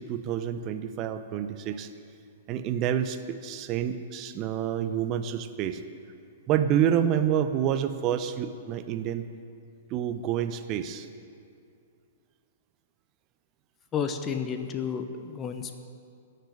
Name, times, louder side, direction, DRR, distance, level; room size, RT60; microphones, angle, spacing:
voice 1, 0.0-1.9 2.5-5.8 6.5-9.3 9.9-11.1, right 9 dB, 35° right, 10 dB, 0.7 m, -28 dB
voice 2, 13.9-15.8, left 7 dB, 25° left, 7 dB, 0.8 m, -31 dB
14.0 x 6.8 x 9.8 m, 2.4 s
figure-of-eight pair, 110°, 0 cm